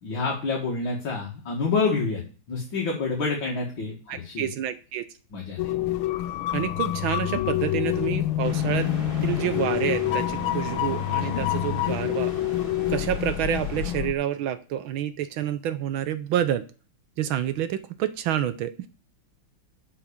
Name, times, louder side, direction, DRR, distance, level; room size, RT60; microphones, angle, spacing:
voice 1, 0.0-4.5 5.3-5.7, left 4 dB, 65° left, -2 dB, 2.8 m, -28 dB
voice 2, 4.1-5.1 6.5-8.9 9.2-12.3 12.9-16.6 17.2-18.9, right 10 dB, 75° right, 12 dB, 1.5 m, -28 dB
sound 1, 5.6-14.1, left 14 dB, 85° left, 1.5 m, -27 dB
sound 2, 8.4-13.9, equal, 25° left, 3.6 m, -37 dB
8.0 x 6.2 x 7.0 m, 0.38 s
omnidirectional pair, 2.3 m